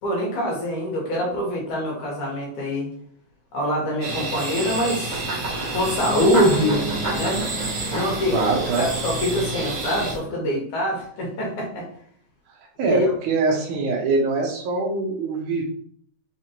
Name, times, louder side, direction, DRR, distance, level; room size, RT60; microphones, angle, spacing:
voice 1, 0.0-2.9 3.5-5.2 5.7-6.9 7.1-7.4 7.9-8.4 8.8-11.9 12.8-13.1, equal, 70° left, -3 dB, 2.7 m, -24 dB
sound 1, 4.0-10.1, right 2 dB, 60° right, 2.0 m, -30 dB
sound 2, 5.1-10.2, right 2 dB, 35° right, 0.7 m, -32 dB
Bass guitar, 6.1-9.9, equal, 50° left, 2.8 m, -34 dB
voice 2, 8.3-8.9 12.8-15.6, right 3 dB, 75° right, 0 dB, 2.2 m, -23 dB
5.8 x 3.1 x 2.8 m, 0.62 s
omnidirectional pair, 3.7 m